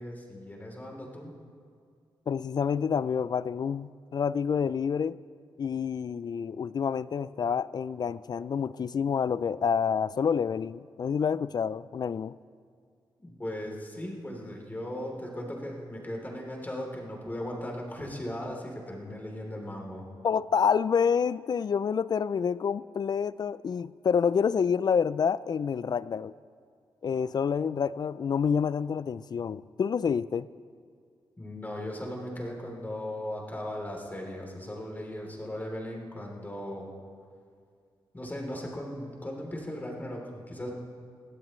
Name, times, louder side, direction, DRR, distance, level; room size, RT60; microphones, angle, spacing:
voice 1, 0.0-1.3 13.2-20.0 31.4-36.9 38.1-40.7, left 1 dB, 20° left, -1 dB, 3.3 m, -37 dB
voice 2, 2.3-5.2 5.6-12.3 20.2-26.3 27.0-30.5, left 6 dB, 50° left, 18 dB, 0.4 m, -28 dB
21.5 x 15.0 x 3.2 m, 2.2 s
cardioid pair, 80°, 9 cm